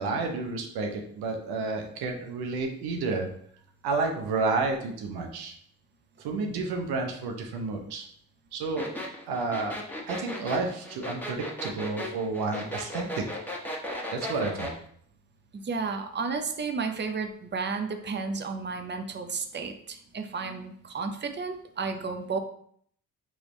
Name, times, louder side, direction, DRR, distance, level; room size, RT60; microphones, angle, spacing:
voice 1, 0.0-3.3 3.8-5.5 6.2-8.1 8.5-8.9 9.3-9.8 10.1-13.3 14.1-14.7, right 3 dB, 80° right, 3 dB, 0.8 m, -30 dB
sound 1, 8.8-14.8, left 1 dB, 5° left, 1.3 m, -35 dB
voice 2, 15.5-22.4, right 4 dB, 30° right, 6 dB, 0.7 m, -32 dB
4.8 x 3.1 x 3.2 m, 0.63 s
supercardioid pair, 45°, 38 cm